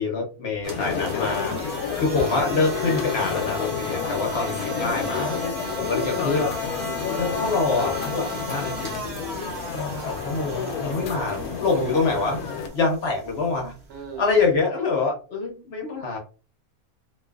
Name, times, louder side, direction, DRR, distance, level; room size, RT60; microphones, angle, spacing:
voice 1, 0.0-1.5 2.0-5.3 5.8-6.6 7.2-8.9 9.3-12.4 12.7-13.7 14.2-16.2, left 3 dB, 55° left, 0.8 m, -25 dB
sound 1, 0.5-14.6, equal, 40° right, 0.7 m, -35 dB
sound 2, 0.6-12.7, left 7 dB, 85° left, 1.0 m, -30 dB
voice 2, 0.7-2.0 4.3-4.5 6.8-7.1 10.9-11.4 11.7-12.2 13.9-14.4, right 6 dB, 85° right, 1.3 m, -39 dB
2.5 x 2.4 x 2.3 m
omnidirectional pair, 1.5 m